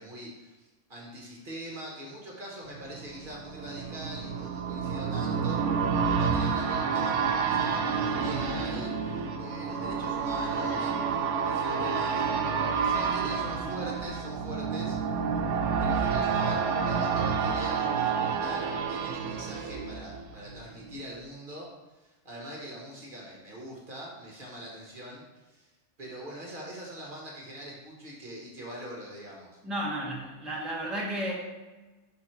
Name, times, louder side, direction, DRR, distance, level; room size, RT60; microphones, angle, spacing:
voice 1, 0.0-12.3 12.7-15.0 15.8-21.7 21.9-25.7 26.0-29.5, right 1 dB, 45° right, -3 dB, 1.4 m, -43 dB
sound 1, 2.8-20.6 20.9-21.0, right 6 dB, 80° right, 0.9 m, -29 dB
voice 2, 29.6-31.3, right 1 dB, ahead, -4 dB, 0.9 m, -33 dB
5.7 x 4.1 x 4.4 m, 1.2 s
omnidirectional pair, 1.3 m